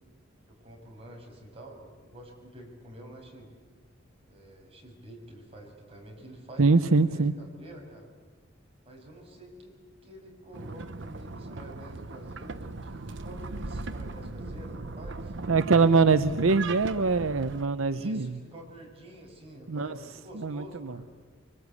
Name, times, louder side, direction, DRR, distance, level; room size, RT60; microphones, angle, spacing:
voice 1, 0.5-3.5 4.3-8.1 8.8-9.7 10.0-15.5 17.9-21.1, right 1 dB, 30° right, 0 dB, 6.3 m, -48 dB
voice 2, 6.6-7.3 15.5-18.3 19.7-19.9 20.3-20.6, right 4 dB, 90° right, 11 dB, 0.8 m, -23 dB
sound 1, 10.5-17.6, right 3 dB, 65° right, 0.9 m, -38 dB
25.0 x 23.5 x 8.3 m, 1.4 s
head